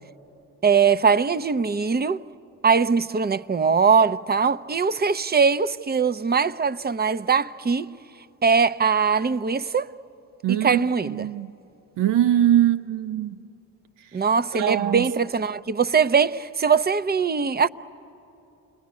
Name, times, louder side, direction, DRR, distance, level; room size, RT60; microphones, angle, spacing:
voice 1, 0.6-2.2 2.6-7.9 8.4-9.9 10.5-11.3 14.1-17.7, right 5 dB, 25° right, 0.6 m, -21 dB
voice 2, 10.4-11.5 12.0-13.4 14.5-15.1, right 11 dB, 80° right, 0.9 m, -22 dB
30.0 x 21.0 x 9.6 m
supercardioid pair, 55°, 41 cm